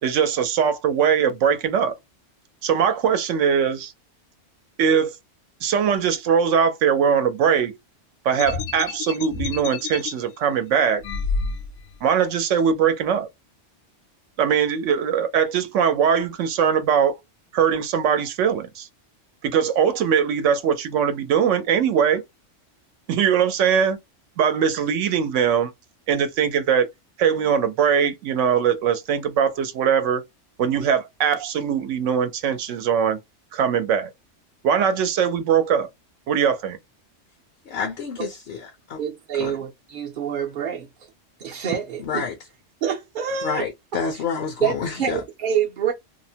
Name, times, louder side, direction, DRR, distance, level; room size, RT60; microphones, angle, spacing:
voice 1, 0.0-1.9 2.6-3.9 4.8-5.2 5.6-7.8 8.2-11.0 12.0-13.3 14.4-17.2 17.5-18.9 19.4-22.2 23.1-24.0 24.4-25.7 26.1-26.9 27.2-30.2 30.6-33.2 33.5-34.1 34.6-35.9 36.3-36.8, right 7 dB, 80° right, 0.9 m, -21 dB
sound 1, 8.4-10.1 11.0-12.0, left 4 dB, 80° left, 0.9 m, -29 dB
voice 2, 37.7-39.0 39.4-39.5 42.0-42.3 43.4-45.2, left 6 dB, 60° left, 0.7 m, -29 dB
voice 3, 39.0-40.9 41.4-42.3 42.8-43.7 44.1-44.2 44.6-45.9, right 8 dB, 55° right, 0.7 m, -26 dB
2.8 x 2.0 x 2.7 m
omnidirectional pair, 1.3 m